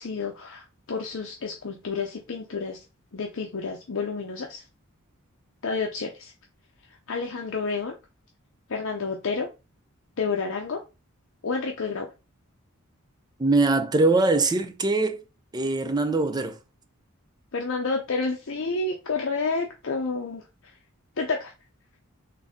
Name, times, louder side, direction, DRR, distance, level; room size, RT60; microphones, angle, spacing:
voice 1, 0.0-2.8 3.1-4.6 5.6-6.3 7.1-7.9 8.7-9.5 10.2-10.8 11.4-12.1 17.5-20.7 21.2-21.5, left 4 dB, 60° left, 0.6 m, -30 dB
voice 2, 13.4-15.2 15.5-16.6, right 3 dB, 20° right, 0.4 m, -22 dB
3.8 x 2.7 x 3.5 m
head